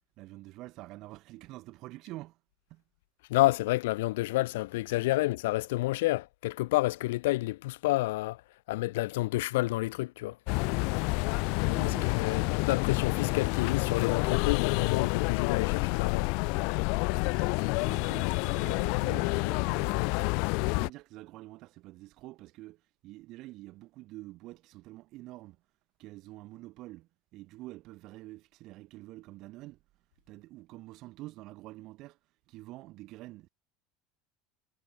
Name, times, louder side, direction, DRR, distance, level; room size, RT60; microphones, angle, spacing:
voice 1, 0.2-2.4 2.7-2.8 11.6-12.7 17.7-20.2 20.6-25.6 26.0-29.8 30.3-32.2 32.5-33.5, right 18 dB, 55° right, 1.9 m, -47 dB
voice 2, 3.3-8.4 8.7-10.4 11.8-16.3, left 19 dB, 85° left, 0.6 m, -29 dB
sound 1, 10.5-20.9, left 34 dB, 65° left, 1.0 m, -28 dB
supercardioid pair, 115°, 0 cm